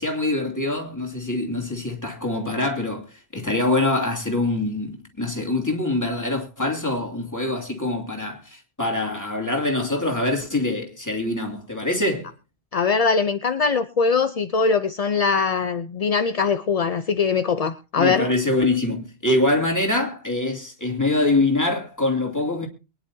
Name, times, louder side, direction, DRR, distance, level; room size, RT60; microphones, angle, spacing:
voice 1, 0.0-3.1 3.3-12.3 18.0-22.7, left 2 dB, 15° left, 2.7 m, -24 dB
voice 2, 12.7-18.3, left 5 dB, 40° left, 0.6 m, -22 dB
23.0 x 10.5 x 2.7 m
omnidirectional pair, 1.3 m